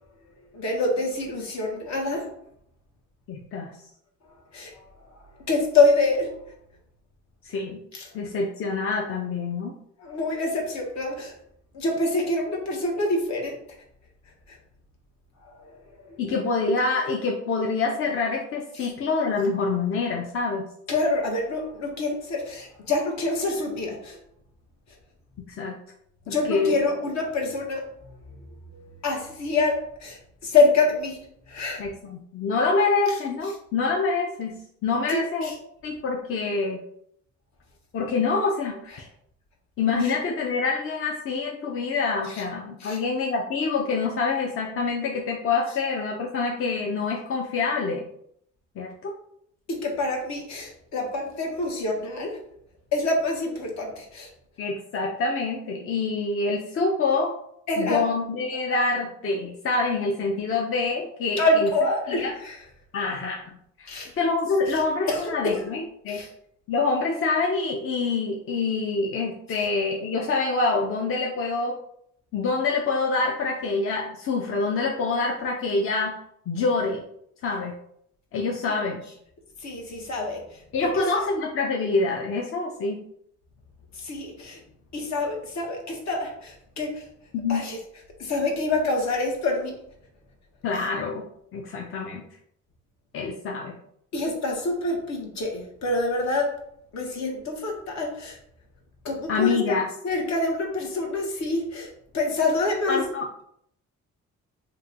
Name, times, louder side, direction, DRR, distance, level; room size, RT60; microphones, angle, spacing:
voice 1, 0.5-2.3 4.5-4.7 5.1-6.5 7.9-8.1 10.0-11.3 11.7-13.6 14.5-14.6 15.4-16.2 18.8-18.9 20.9-24.2 26.3-27.9 28.7-31.8 33.1-33.2 35.1-35.5 38.9-39.0 40.0-40.2 42.3-42.4 42.8-43.0 49.7-52.4 52.9-54.3 57.7-58.0 61.4-62.6 63.9-64.1 64.7-65.6 66.1-66.3 69.5-69.6 78.7-78.8 79.6-81.0 83.9-84.6 84.9-87.1 87.5-87.8 88.2-89.8 94.1-96.6 96.9-98.4 99.0-103.0, left 2 dB, 65° left, 0 dB, 1.0 m, -26 dB
voice 2, 3.3-3.7 7.4-7.8 8.1-9.7 16.2-20.7 25.5-25.7 26.3-26.8 31.8-34.6 34.8-35.5 35.8-36.8 37.9-39.1 39.8-48.1 48.8-49.1 54.6-57.3 57.8-61.7 62.1-62.3 62.9-63.4 63.8-63.9 64.2-66.2 66.7-71.8 72.3-76.2 76.5-77.0 77.4-77.7 78.3-79.0 80.7-83.0 87.3-87.6 90.6-91.2 91.5-92.2 93.1-93.8 99.3-99.9 102.9-103.3, left 4 dB, 45° left, 0 dB, 0.6 m, -26 dB
3.0 x 2.2 x 3.7 m, 0.70 s
cardioid pair, 90°, 30 cm